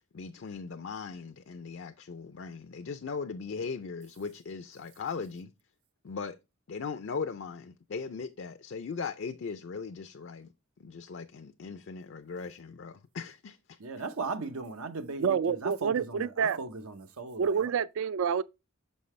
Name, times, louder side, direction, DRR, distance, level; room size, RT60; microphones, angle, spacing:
voice 1, 0.1-5.5 6.0-6.4 6.7-10.5 10.8-13.8, left 5 dB, 55° left, 0.4 m, -39 dB
voice 2, 13.8-17.7, right 4 dB, 80° right, 0.8 m, -38 dB
voice 3, 15.2-16.6 17.4-18.4, right 6 dB, 65° right, 0.3 m, -28 dB
6.5 x 5.4 x 3.2 m
head